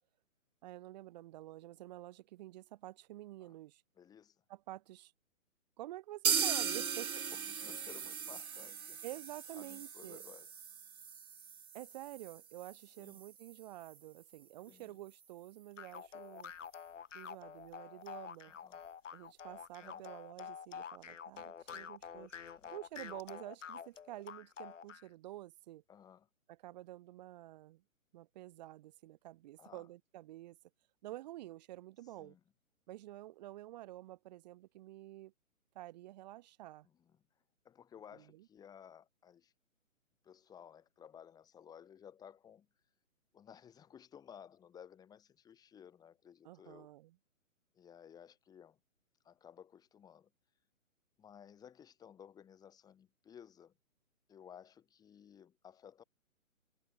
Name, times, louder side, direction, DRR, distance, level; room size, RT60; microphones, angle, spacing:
voice 1, 0.6-3.8 4.5-5.1 5.8-7.1 9.0-10.2 11.7-16.5 17.1-18.5 19.1-22.3 22.7-25.8 26.5-27.8 28.1-30.6 31.0-32.4 32.9-35.3 35.7-36.9 38.2-38.5 46.4-47.2, right 15 dB, 30° right, 7.8 m, -49 dB
voice 2, 4.0-4.4 7.1-9.0 9.5-10.5 13.0-13.2 14.7-15.0 18.4-18.8 19.8-20.1 22.5-22.7 25.9-26.3 29.6-29.9 32.2-32.4 36.8-37.2 37.6-39.5 40.2-42.7 43.3-46.9 47.7-48.8 49.2-50.3 51.2-53.7 54.3-56.0, left 8 dB, 10° left, 4.5 m, -57 dB
sound 1, 6.2-14.0 14.3-14.4 14.7-14.8 15.2-15.3, right 7 dB, 85° right, 1.2 m, -39 dB
sound 2, 15.8-25.1, left 7 dB, 60° left, 2.8 m, -48 dB
hypercardioid pair, 160°, 42 cm